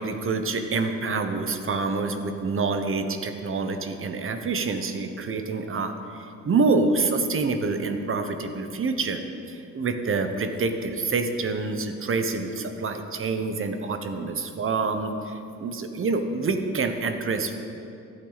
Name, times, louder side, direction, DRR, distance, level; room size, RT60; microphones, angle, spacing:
voice 1, 0.0-9.2 9.5-17.6, right 4 dB, 45° right, 7 dB, 1.1 m, -27 dB
14.0 x 9.0 x 4.1 m, 2.6 s
cardioid pair, 90°, 30 cm